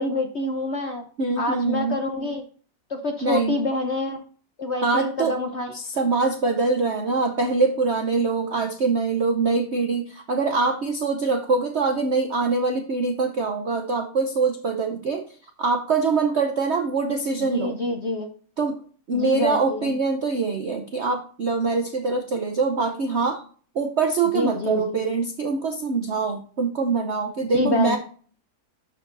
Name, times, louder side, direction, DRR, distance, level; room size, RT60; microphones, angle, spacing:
voice 1, 0.0-1.1 1.4-2.4 2.9-4.2 4.6-5.7 17.4-18.3 19.1-20.0 24.3-25.1 27.4-28.0, left 2 dB, 55° left, 4 dB, 0.7 m, -27 dB
voice 2, 1.2-2.0 3.2-3.6 4.8-5.4 5.7-15.3 15.6-17.8 18.6-18.8 19.1-23.4 23.7-28.0, right 4 dB, 65° right, 5 dB, 0.6 m, -24 dB
12.0 x 4.7 x 2.6 m, 0.43 s
omnidirectional pair, 2.2 m